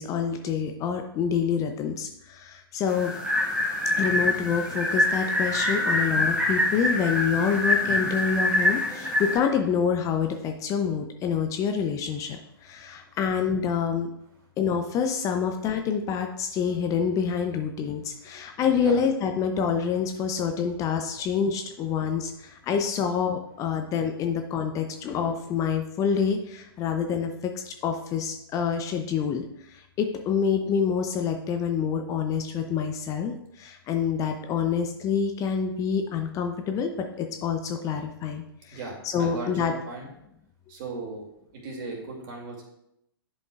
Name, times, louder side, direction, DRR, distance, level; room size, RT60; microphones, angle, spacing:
voice 1, 0.0-3.1 4.0-14.1 14.6-36.9 37.2-38.8 39.0-39.7, left 7 dB, 25° left, 5 dB, 0.6 m, -27 dB
sound 1, 2.9-9.4, left 1 dB, 10° right, 1.7 m, -25 dB
voice 2, 38.7-40.1 40.7-41.3 41.5-42.6, right 3 dB, 45° right, -1 dB, 2.5 m, -37 dB
10.5 x 5.3 x 2.4 m, 0.79 s
hypercardioid pair, 115°, 13 cm